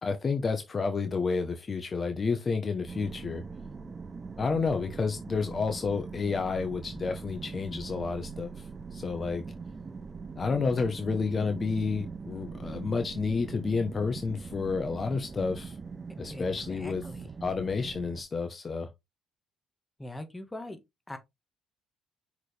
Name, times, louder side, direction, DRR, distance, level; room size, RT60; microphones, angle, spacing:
voice 1, 0.0-3.4 4.4-9.4 10.3-15.8 16.2-17.0 17.4-18.9, left 4 dB, 30° left, 1.1 m, -30 dB
sound 1, 2.9-18.2, right 5 dB, 30° right, 0.6 m, -42 dB
voice 2, 16.3-17.3 20.0-20.8 21.1-21.2, left 1 dB, 10° left, 1.5 m, -42 dB
6.1 x 4.9 x 3.4 m
cardioid pair, 100°, 0 cm